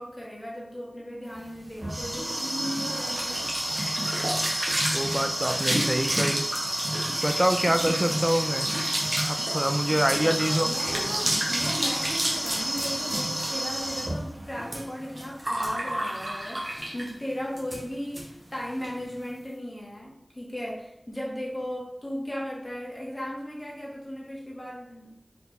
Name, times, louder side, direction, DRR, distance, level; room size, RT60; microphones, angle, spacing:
voice 1, 0.0-3.4 10.2-25.2, equal, 30° left, -3 dB, 1.1 m, -36 dB
sound 1, 1.4-17.2 17.6-17.8 18.1-18.2 18.5-18.9, right 1 dB, 45° right, 0.9 m, -29 dB
voice 2, 4.9-6.5 7.2-8.7 9.3-10.7, right 1 dB, 20° right, 7 dB, 0.3 m, -26 dB
4.1 x 3.3 x 3.0 m, 0.78 s
wide cardioid pair, 60°, 0 cm